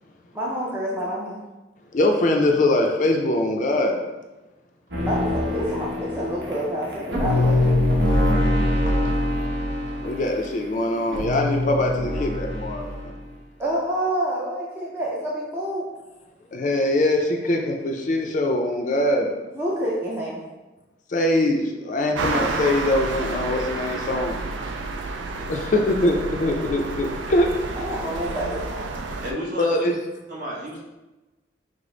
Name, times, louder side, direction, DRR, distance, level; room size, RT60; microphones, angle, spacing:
voice 1, 0.3-1.4 4.9-7.8 13.6-15.9 19.5-20.4 25.5-25.7 27.8-28.9, right 1 dB, 15° right, -6 dB, 0.5 m, -28 dB
voice 2, 1.9-4.0 10.0-13.1 16.5-19.3 21.1-24.4 25.5-27.5 29.6-29.9, left 1 dB, 45° left, 2 dB, 0.4 m, -22 dB
sound 1, 4.9-13.1, left 1 dB, 70° right, 0.9 m, -24 dB
sound 2, 22.1-29.3, right 3 dB, 85° right, 0.4 m, -30 dB
voice 3, 29.2-29.9 30.3-30.8, equal, 45° right, -5 dB, 1.1 m, -31 dB
4.9 x 2.0 x 3.7 m, 1.1 s
head